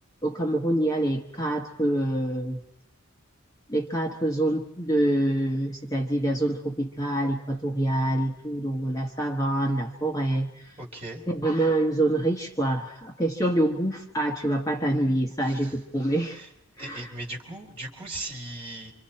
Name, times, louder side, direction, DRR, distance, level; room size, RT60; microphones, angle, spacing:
voice 1, 0.2-2.6 3.7-10.7 11.3-16.4 16.8-17.1, right 1 dB, 15° left, 1 dB, 1.2 m, -26 dB
voice 2, 10.8-11.2 15.5-15.7 16.4-16.5 16.8-18.9, right 2 dB, 30° right, 1 dB, 3.7 m, -38 dB
27.5 x 26.0 x 4.4 m, 0.82 s
head